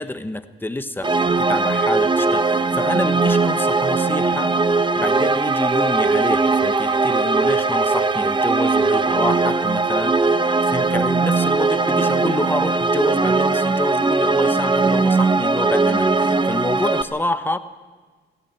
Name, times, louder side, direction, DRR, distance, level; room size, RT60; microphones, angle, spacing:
voice 1, 0.0-4.5 5.0-10.4 10.7-17.6, left 2 dB, 10° left, 10 dB, 1.2 m, -28 dB
sound 1, 1.0-17.0, right 3 dB, 25° right, 1.0 m, -19 dB
17.0 x 16.5 x 9.7 m, 1.4 s
cardioid pair, 90°, 20 cm